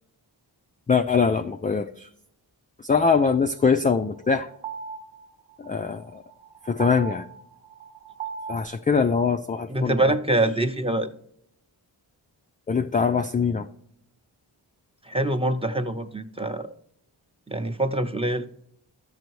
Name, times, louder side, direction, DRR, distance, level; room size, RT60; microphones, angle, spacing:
voice 1, 0.9-2.1 2.8-4.5 5.6-6.2 6.7-7.3 8.5-10.1 12.7-13.7, left 5 dB, 20° left, 7 dB, 0.3 m, -23 dB
sound 1, 3.3-8.7, right 6 dB, 75° right, 1.1 m, -39 dB
voice 2, 9.7-11.1 15.1-16.7 17.5-18.5, right 1 dB, 10° right, 8 dB, 0.7 m, -25 dB
12.5 x 6.7 x 3.1 m, 0.76 s
cardioid pair, 50°, 46 cm